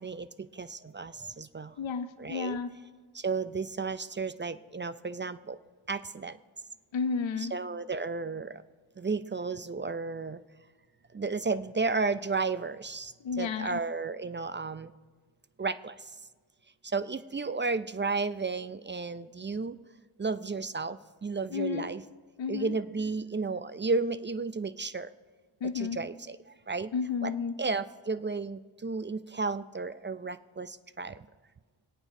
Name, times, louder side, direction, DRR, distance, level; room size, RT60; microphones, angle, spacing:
voice 1, 0.0-1.8 2.2-2.6 3.1-5.6 5.9-6.4 7.4-8.6 9.0-10.4 11.1-14.9 15.6-16.2 16.8-19.8 20.2-22.0 22.5-25.1 25.7-26.9 27.2-27.3 27.6-31.3, right 4 dB, 25° right, 13 dB, 0.3 m, -33 dB
voice 2, 1.8-2.7 6.9-7.5 13.2-13.8 21.5-21.9 22.4-22.7 25.6-26.0 26.9-27.5, left 6 dB, 65° left, 11 dB, 0.7 m, -32 dB
26.0 x 8.8 x 2.7 m, 1.4 s
cardioid pair, 55°, 50 cm